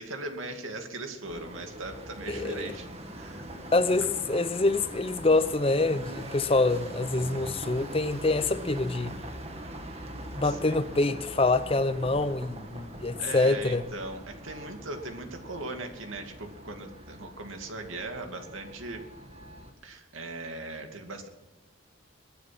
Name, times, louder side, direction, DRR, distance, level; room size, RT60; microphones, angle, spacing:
voice 1, 0.0-2.9 3.2-3.4 10.1-10.8 13.2-19.1 19.8-21.3, right 2 dB, 80° right, 2.5 m, -39 dB
sound 1, 1.2-19.7, right 1 dB, 30° right, 1.9 m, -42 dB
voice 2, 2.3-2.7 3.7-9.1 10.3-13.8, left 2 dB, 25° left, 0.6 m, -26 dB
22.0 x 9.6 x 6.1 m
head